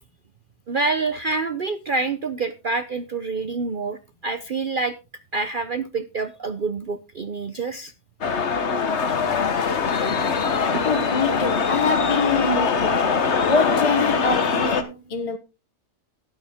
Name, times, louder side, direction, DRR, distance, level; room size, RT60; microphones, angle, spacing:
voice 1, 0.7-4.9 5.3-7.9 10.7-10.9, right 3 dB, 45° right, 0.8 m, -27 dB
sound 1, 8.2-14.8, left 5 dB, 55° left, 1.4 m, -22 dB
voice 2, 10.8-15.4, left 3 dB, 25° left, 0.9 m, -25 dB
12.5 x 9.6 x 3.5 m
omnidirectional pair, 1.5 m